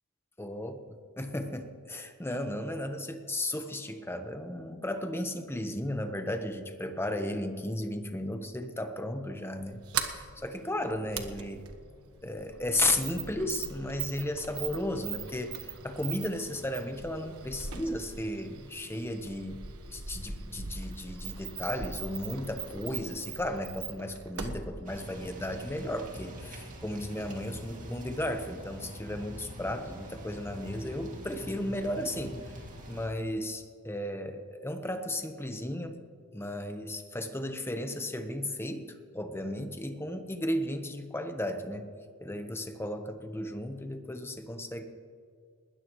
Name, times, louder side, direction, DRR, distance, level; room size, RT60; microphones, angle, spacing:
voice 1, 0.4-0.8 1.2-11.7 12.2-32.6 32.9-36.0 36.3-41.9 42.2-44.8, left 1 dB, 10° left, 6 dB, 1.1 m, -34 dB
Sliding door, 9.6-26.0, right 6 dB, 70° right, 1.3 m, -41 dB
sound 1, 24.8-33.1, equal, 35° right, 2.4 m, -45 dB
20.5 x 19.5 x 3.2 m, 2.1 s
head